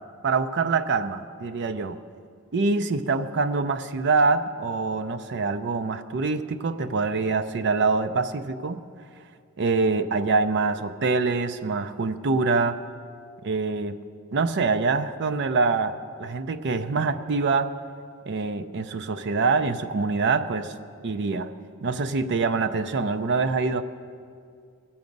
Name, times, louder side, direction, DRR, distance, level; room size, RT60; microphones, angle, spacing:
voice 1, 0.2-2.0 2.5-8.8 9.6-12.8 13.4-14.0 14.3-17.7 18.3-20.7 21.0-21.5 21.8-23.8, right 4 dB, 55° right, 10 dB, 0.5 m, -25 dB
20.0 x 7.2 x 5.3 m, 2.2 s
head